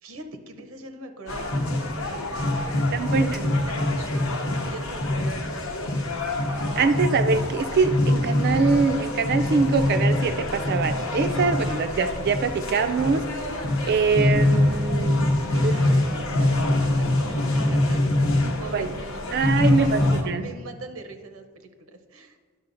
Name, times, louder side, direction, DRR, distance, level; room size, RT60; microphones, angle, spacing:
voice 1, 0.0-5.5 15.5-18.0 18.4-22.4, right 2 dB, 80° right, 6 dB, 0.7 m, -42 dB
sound 1, 1.3-20.2, left 1 dB, 65° left, 0.9 m, -24 dB
voice 2, 2.9-3.5 6.8-13.2 13.8-15.3 15.6-15.7 18.7-18.9 19.3-20.5, right 4 dB, 50° right, 10 dB, 0.4 m, -23 dB
sound 2, 8.5-19.6, left 2 dB, 20° left, 0.4 m, -42 dB
11.0 x 6.3 x 2.6 m, 1.5 s
head